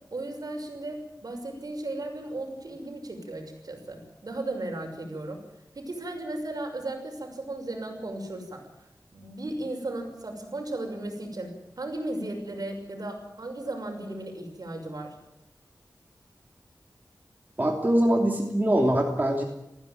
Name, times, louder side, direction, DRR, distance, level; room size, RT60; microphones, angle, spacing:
voice 1, 0.1-5.4 5.7-8.6 9.1-15.1, right 2 dB, 65° right, 3 dB, 6.3 m, -35 dB
voice 2, 17.6-19.4, right 1 dB, 25° right, 1 dB, 3.0 m, -23 dB
19.5 x 16.0 x 9.4 m, 0.90 s
wide cardioid pair, 90°, 7 cm